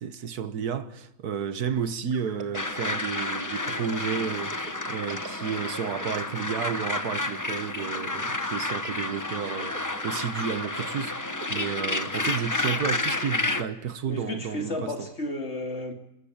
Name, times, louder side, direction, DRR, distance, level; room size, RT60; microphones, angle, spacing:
voice 1, 0.0-15.1, right 7 dB, 85° right, 1.7 m, -32 dB
sound 1, 2.1-12.7, right 5 dB, 70° right, 2.2 m, -45 dB
sound 2, 2.5-13.6, left 2 dB, 15° left, 0.9 m, -30 dB
voice 2, 14.1-15.9, left 1 dB, 45° left, 3.3 m, -32 dB
27.5 x 14.0 x 8.8 m
omnidirectional pair, 1.6 m